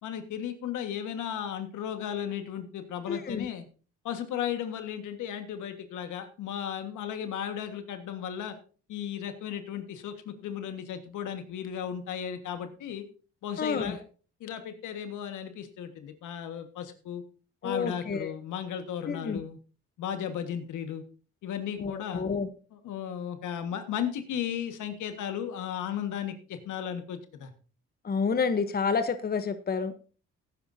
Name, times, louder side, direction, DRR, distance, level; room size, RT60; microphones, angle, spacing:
voice 1, 0.0-3.6 4.0-8.5 8.9-13.0 13.4-14.0 14.4-17.2 17.6-19.6 20.0-21.0 21.4-22.2 22.7-27.5, left 9 dB, 80° left, 8 dB, 1.6 m, -35 dB
voice 2, 3.1-3.5 13.6-14.0 17.6-18.3 19.1-19.4 21.8-22.5 28.0-29.9, left 5 dB, 30° left, 10 dB, 0.9 m, -29 dB
16.5 x 9.8 x 2.7 m, 0.37 s
cardioid pair, 90°, 30 cm